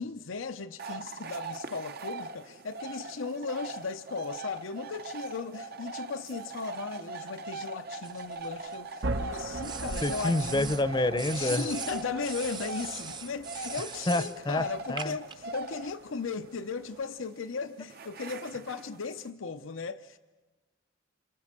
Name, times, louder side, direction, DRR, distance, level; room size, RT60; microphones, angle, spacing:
voice 1, 0.0-10.8 11.3-20.2, left 4 dB, 85° left, 0.8 m, -37 dB
sound 1, 0.8-19.3, right 3 dB, 55° right, 0.9 m, -42 dB
sound 2, 8.0-9.0 9.6-10.8 11.2-14.4 15.0-15.4, right 5 dB, 25° right, 0.8 m, -40 dB
sound 3, 9.0-17.0, right 2 dB, 70° right, 1.1 m, -41 dB
voice 2, 10.0-11.7 14.1-15.2, left 2 dB, 25° left, 0.7 m, -28 dB
28.0 x 27.0 x 7.5 m
head